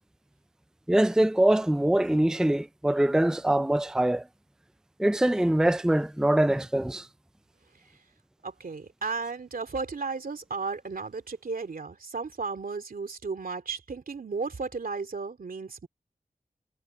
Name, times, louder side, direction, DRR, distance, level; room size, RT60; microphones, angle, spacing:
voice 1, 0.9-4.2 5.0-7.1, right 1 dB, 5° right, 0.5 m, -23 dB
voice 2, 8.4-15.9, right 4 dB, 80° right, 2.7 m, -34 dB
cardioid pair, 50°, 15 cm